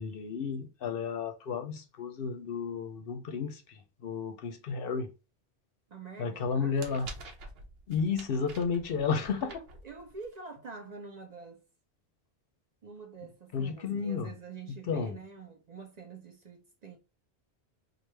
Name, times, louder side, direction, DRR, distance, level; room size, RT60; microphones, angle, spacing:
voice 1, 0.0-5.1 6.2-7.1 7.9-9.6 13.5-14.3 14.9-15.2, left 5 dB, 65° left, 0.7 m, -32 dB
voice 2, 5.9-7.1 9.4-9.5 9.8-11.6 12.8-17.0, right 5 dB, 50° right, 0.6 m, -46 dB
sound 1, 6.4-10.4, right 2 dB, 70° right, 0.9 m, -48 dB
3.1 x 2.3 x 3.2 m
omnidirectional pair, 1.1 m